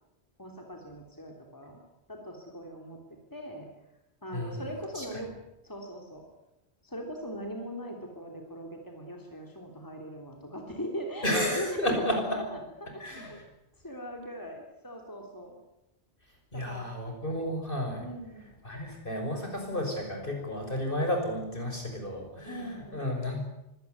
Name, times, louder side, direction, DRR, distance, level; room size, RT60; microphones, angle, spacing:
voice 1, 0.4-1.8 2.1-3.7 4.2-5.4 5.6-6.3 6.8-13.4 13.8-15.5 16.5-16.9 18.0-18.5 22.4-23.1, equal, 20° left, 2 dB, 3.3 m, -40 dB
voice 2, 11.2-12.4 13.0-13.3 16.5-18.1 18.6-23.4, left 1 dB, 55° left, 3 dB, 6.2 m, -32 dB
24.0 x 17.5 x 9.5 m, 0.87 s
omnidirectional pair, 1.1 m